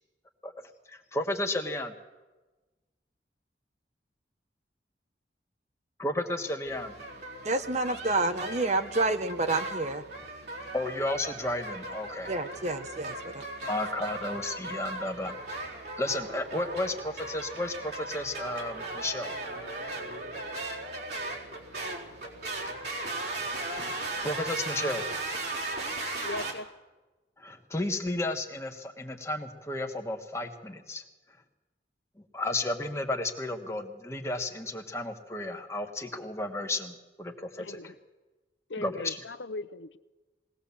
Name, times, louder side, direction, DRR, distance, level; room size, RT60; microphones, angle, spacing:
voice 1, 0.9-1.9 6.0-6.9 10.7-12.3 13.7-15.7 16.0-19.4 22.6-22.7 24.2-25.0 27.4-31.0 32.3-37.9 38.8-39.2, left 1 dB, 15° left, 3 dB, 1.6 m, -33 dB
sound 1, 6.7-26.5, right 2 dB, 60° right, 4.1 m, -37 dB
voice 2, 7.4-10.0 12.3-13.4, right 2 dB, 40° right, 9 dB, 1.0 m, -29 dB
voice 3, 26.2-26.7 37.6-37.9 38.7-40.0, left 2 dB, 80° left, 12 dB, 0.7 m, -38 dB
20.5 x 18.5 x 7.3 m, 1.2 s
head